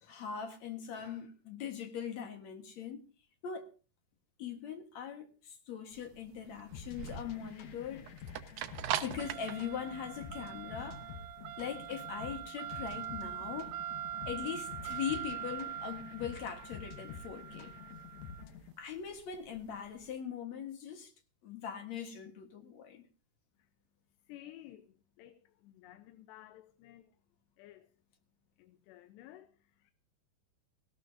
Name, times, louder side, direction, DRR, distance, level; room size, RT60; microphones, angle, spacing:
voice 1, 0.0-3.0 3.4-3.7 4.4-8.1 9.0-11.0 11.6-13.7 14.3-17.7 18.8-21.1 21.4-23.0, left 8 dB, 55° left, 2.2 m, -41 dB
sound 1, 5.9-20.0, right 11 dB, 85° right, 1.7 m, -42 dB
sound 2, 6.7-18.7, left 6 dB, 70° left, 1.6 m, -49 dB
voice 2, 24.3-27.2 27.6-27.9 28.6-29.9, left 13 dB, 90° left, 3.0 m, -54 dB
18.0 x 17.5 x 2.7 m
omnidirectional pair, 4.8 m